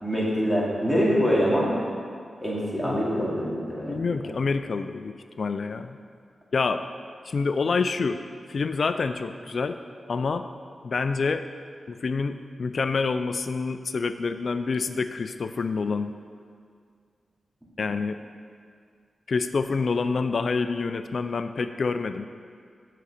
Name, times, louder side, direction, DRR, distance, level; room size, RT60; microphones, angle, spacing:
voice 1, 0.0-1.7 2.4-4.2, equal, 5° right, -5 dB, 2.4 m, -24 dB
voice 2, 3.9-6.0 6.5-6.8 7.3-8.2 8.5-9.8 10.1-10.5 10.8-11.4 11.9-16.1 17.8-18.2 19.3-22.3, left 4 dB, 60° left, 10 dB, 0.4 m, -27 dB
7.7 x 6.8 x 6.6 m, 2.1 s
wide cardioid pair, 90°, 0 cm